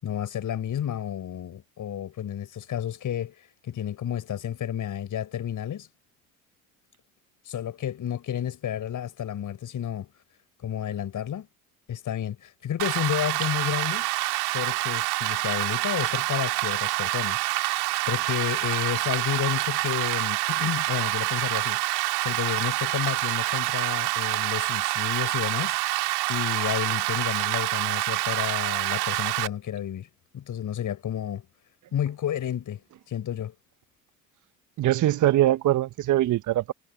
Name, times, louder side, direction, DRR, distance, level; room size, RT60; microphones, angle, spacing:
voice 1, 0.0-5.9 7.5-10.1 10.6-11.5 11.9-14.1 14.5-17.8 18.1-21.8 22.2-25.8 26.3-30.1 30.3-31.5 31.9-32.8 33.1-33.5, left 10 dB, 45° left, 7.3 m, -31 dB
Rain, 12.8-29.5, right 20 dB, 65° right, 3.3 m, -27 dB
voice 2, 34.8-36.7, right 14 dB, 45° right, 1.1 m, -22 dB
hypercardioid pair, 70°, 43 cm